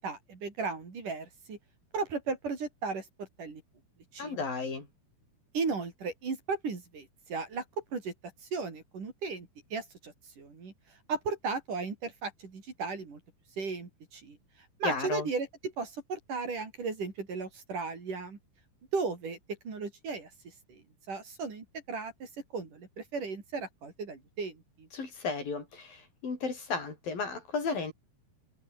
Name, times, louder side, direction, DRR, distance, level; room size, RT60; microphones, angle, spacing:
voice 1, 0.0-1.6 1.9-3.6 4.1-4.4 5.5-7.6 7.9-8.1 8.5-10.7 11.1-13.2 13.6-14.4 14.8-18.4 18.9-19.4 19.6-20.3 20.7-20.8 21.1-24.9, right 4 dB, 50° right, 6.0 m, -36 dB
voice 2, 4.2-4.9 14.8-15.3 24.9-27.9, left 4 dB, 55° left, 7.3 m, -34 dB
omnidirectional pair, 5.0 m